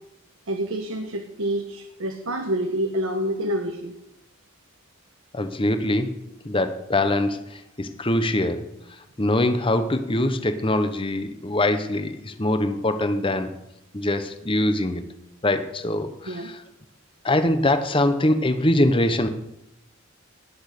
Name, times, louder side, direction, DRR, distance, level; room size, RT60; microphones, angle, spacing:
voice 1, 0.5-3.9 16.3-16.5, right 1 dB, 85° right, 5 dB, 1.2 m, -27 dB
voice 2, 5.3-6.2 6.4-8.7 9.2-13.5 13.9-15.0 15.4-16.6 17.2-19.3, left 1 dB, 25° left, 9 dB, 1.0 m, -23 dB
19.0 x 6.3 x 6.7 m, 0.87 s
head